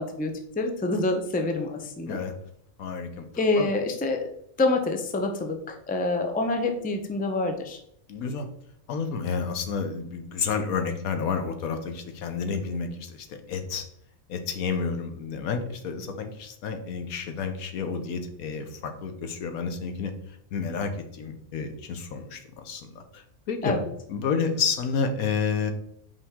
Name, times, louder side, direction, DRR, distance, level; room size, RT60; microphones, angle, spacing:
voice 1, 0.0-2.2 3.4-4.2 4.6-7.8 23.6-23.9, left 2 dB, 10° left, 4 dB, 0.4 m, -27 dB
voice 2, 2.8-3.3 3.6-3.7 8.1-8.5 8.9-13.9 14.3-20.1 20.5-23.8 24.1-25.7, left 5 dB, 90° left, 7 dB, 1.3 m, -30 dB
5.4 x 4.8 x 3.6 m, 0.70 s
omnidirectional pair, 1.4 m